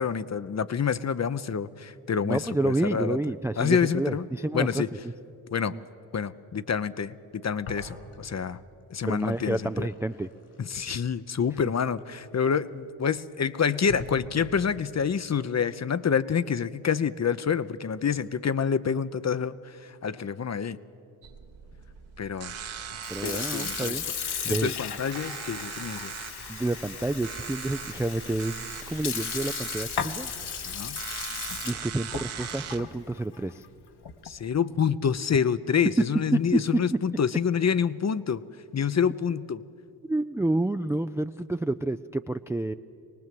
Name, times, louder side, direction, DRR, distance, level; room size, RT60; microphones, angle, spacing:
voice 1, 0.0-3.2 3.6-4.3 4.5-4.9 5.5-5.7 6.1-8.6 8.9-9.9 10.7-19.5 20.0-20.8 22.2-22.5 23.2-23.9 24.5-26.1 30.7-31.0 34.2-38.4 38.7-39.6, left 7 dB, 35° left, 15 dB, 0.8 m, -27 dB
voice 2, 2.2-5.1 5.7-5.8 9.1-10.3 23.1-24.7 26.5-30.3 31.6-33.6 36.3-36.8 40.1-42.7, right 2 dB, 5° right, 11 dB, 0.4 m, -29 dB
sound 1, 7.6-8.4 8.7-12.7 13.3-13.4 13.9-14.8, left 2 dB, 80° left, 5.7 m, -44 dB
sound 2, 21.2-32.8, right 8 dB, 70° right, 1.8 m, -40 dB
Sink (filling or washing) / Fill (with liquid), 22.9-34.4, left 7 dB, 50° left, 1.3 m, -36 dB
24.0 x 19.0 x 7.7 m, 2.7 s
hypercardioid pair, 50°, 49 cm